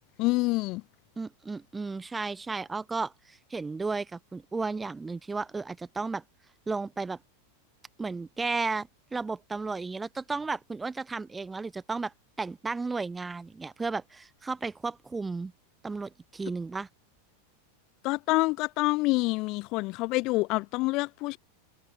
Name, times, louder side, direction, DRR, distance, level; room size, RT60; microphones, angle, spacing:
voice 1, 0.2-0.8 18.0-21.4, left 22 dB, 40° left, 1.0 m, -27 dB
voice 2, 1.2-6.2 6.7-7.2 8.0-15.5 15.8-16.9, right 4 dB, 10° right, 1.5 m, -34 dB
figure-of-eight pair, 90°, 0 cm